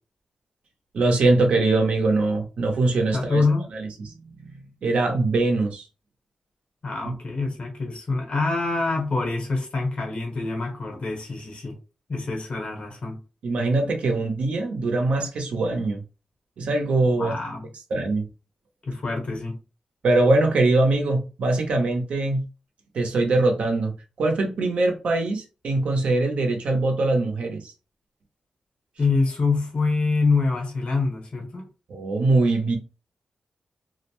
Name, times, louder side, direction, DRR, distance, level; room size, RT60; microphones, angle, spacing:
voice 1, 0.9-3.4 3.7-3.9 4.4-4.5 4.8-5.8 7.0-7.1 13.4-16.0 16.6-17.3 17.9-18.3 20.0-22.4 22.9-23.9 24.2-27.7 31.9-32.8, right 2 dB, 90° right, 0.7 m, -22 dB
voice 2, 3.1-3.7 6.8-11.8 12.1-13.2 17.2-17.7 18.8-19.5 29.0-31.7, left 3 dB, 65° left, 1.1 m, -25 dB
2.4 x 2.1 x 3.0 m
cardioid pair, 70°, 2 cm